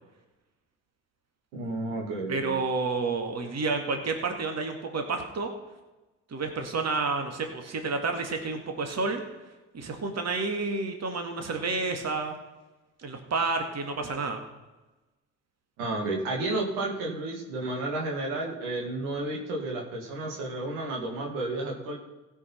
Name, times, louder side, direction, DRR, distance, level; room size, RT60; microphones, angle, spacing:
voice 1, 1.5-2.5 15.8-22.0, right 2 dB, 85° right, -1 dB, 2.1 m, -32 dB
voice 2, 2.3-5.5 6.3-9.2 9.7-12.4 13.0-14.4, right 3 dB, 45° right, 5 dB, 2.1 m, -30 dB
16.0 x 5.6 x 5.7 m, 1.1 s
hypercardioid pair, 55°, 35 cm